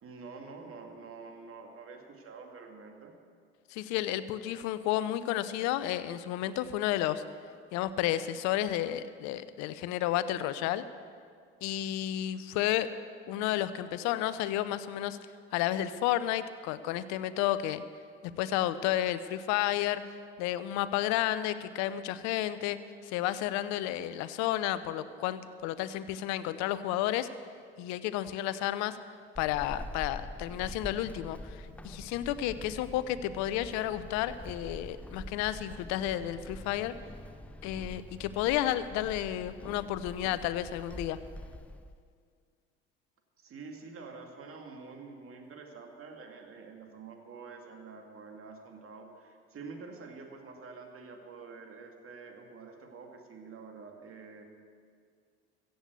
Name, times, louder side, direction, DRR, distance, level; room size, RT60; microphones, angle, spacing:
voice 1, 0.0-3.1 43.4-54.4, right 4 dB, 45° right, 3 dB, 2.3 m, -47 dB
voice 2, 3.7-7.2 7.7-10.8 11.6-12.9 13.3-15.2 15.5-17.8 18.4-20.0 20.4-22.8 23.0-27.3 27.8-29.0 29.4-36.9 37.6-41.2, left 13 dB, 65° left, 14 dB, 0.7 m, -31 dB
Walk footsteps / Squeak, 29.4-42.0, left 1 dB, 5° left, 0.6 m, -45 dB
15.5 x 7.8 x 8.2 m, 2.1 s
hypercardioid pair, 60°, 30 cm